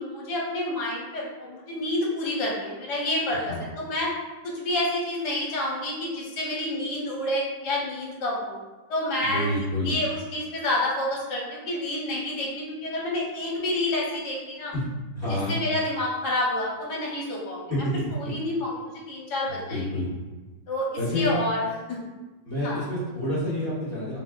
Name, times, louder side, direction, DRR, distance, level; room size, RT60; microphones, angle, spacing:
voice 1, 0.0-3.4 3.8-4.1 4.4-8.6 8.9-9.6 9.8-14.7 15.3-17.7 18.1-19.9 20.7-22.0 22.6-22.9, left 1 dB, 65° left, -4 dB, 1.3 m, -29 dB
voice 2, 3.3-3.7 9.2-10.0 14.7-14.8 15.1-15.6 17.7-18.3 19.5-20.1 21.0-21.4 22.4-24.2, left 1 dB, 20° right, -11 dB, 0.8 m, -28 dB
4.0 x 2.0 x 3.6 m, 1.2 s
omnidirectional pair, 2.1 m